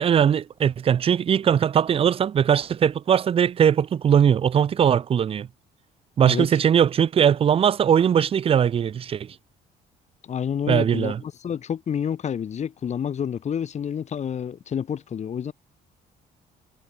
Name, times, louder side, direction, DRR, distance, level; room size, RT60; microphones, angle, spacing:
voice 1, 0.0-5.5 6.2-9.3 10.7-11.2, right 8 dB, 35° right, 0.5 m, -20 dB
voice 2, 10.2-15.5, left 8 dB, 40° left, 1.8 m, -29 dB
cardioid pair, 110°, 17 cm